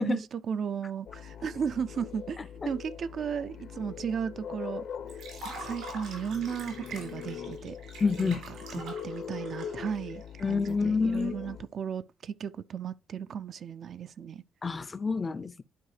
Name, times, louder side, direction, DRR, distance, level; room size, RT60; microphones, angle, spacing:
voice 1, 0.0-2.4 2.6-4.8 5.1-7.8 8.2-8.4 8.7-14.4, right 7 dB, 60° right, 0.3 m, -35 dB
sound 1, 1.1-11.6, left 7 dB, 70° left, 0.7 m, -42 dB
Liquid, 5.1-11.2, right 2 dB, 80° right, 4.2 m, -45 dB
voice 2, 8.0-8.4 10.4-11.3 14.6-15.6, left 4 dB, 30° left, 0.4 m, -28 dB
11.0 x 4.7 x 3.2 m
cardioid pair, 90°, 0 cm